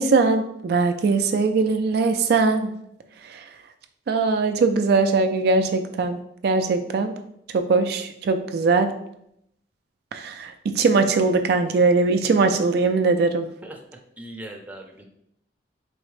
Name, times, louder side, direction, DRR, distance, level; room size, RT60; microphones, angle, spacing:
voice 1, 0.0-2.7 3.3-3.4 4.1-6.2 6.4-7.1 7.5-8.9 10.1-13.5, right 4 dB, 60° right, 7 dB, 0.3 m, -21 dB
voice 2, 12.6-13.1 13.6-13.8 14.2-15.0, right 1 dB, 10° right, 1 dB, 0.5 m, -40 dB
4.0 x 3.5 x 3.2 m, 0.75 s
head